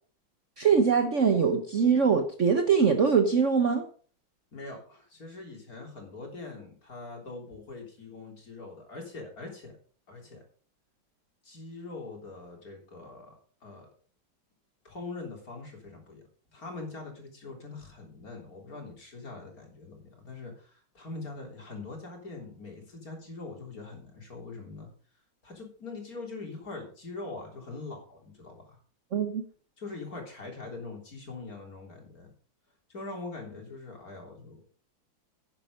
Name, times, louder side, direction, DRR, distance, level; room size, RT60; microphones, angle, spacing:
voice 1, 0.6-3.9 29.1-29.4, right 6 dB, 45° right, 1.2 m, -23 dB
voice 2, 4.5-9.8 10.1-10.4 11.4-13.3 13.6-13.9 14.8-16.2 16.5-24.9 25.4-28.8 29.8-32.3 32.9-34.7, left 3 dB, 45° left, 4.0 m, -42 dB
10.5 x 9.8 x 5.2 m
omnidirectional pair, 2.1 m